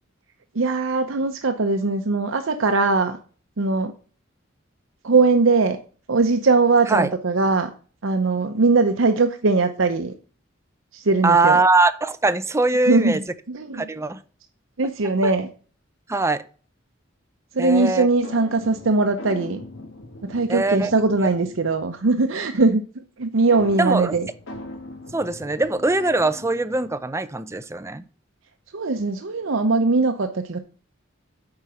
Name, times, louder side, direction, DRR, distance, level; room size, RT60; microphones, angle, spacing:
voice 1, 0.5-3.2 3.6-3.9 5.0-5.8 6.1-7.7 8.0-10.1 10.9-11.6 12.9-13.9 14.8-15.5 17.5-19.6 20.2-22.8 23.2-24.3 28.7-30.6, right 3 dB, 85° right, 6 dB, 0.8 m, -20 dB
voice 2, 11.2-13.2 13.7-14.2 15.2-15.3 16.1-16.4 17.6-18.1 20.5-20.9 23.8-24.2 25.1-28.0, right 3 dB, 15° right, 12 dB, 0.5 m, -21 dB
sound 1, 18.2-22.0 23.5-27.1, left 2 dB, 85° left, 2.1 m, -40 dB
8.9 x 4.8 x 5.6 m, 0.39 s
head